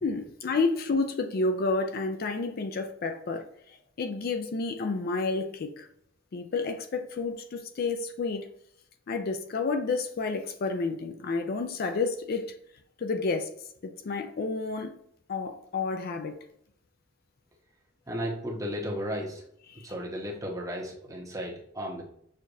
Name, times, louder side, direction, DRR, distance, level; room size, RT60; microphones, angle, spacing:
voice 1, 0.0-3.5 4.0-5.9 6.3-8.5 9.1-12.5 13.0-13.5 13.8-14.9 15.3-16.3 19.7-19.9, left 3 dB, 50° left, 0.4 m, -30 dB
voice 2, 18.1-19.4 19.8-22.0, equal, 15° right, 1.0 m, -34 dB
6.3 x 2.5 x 2.6 m
head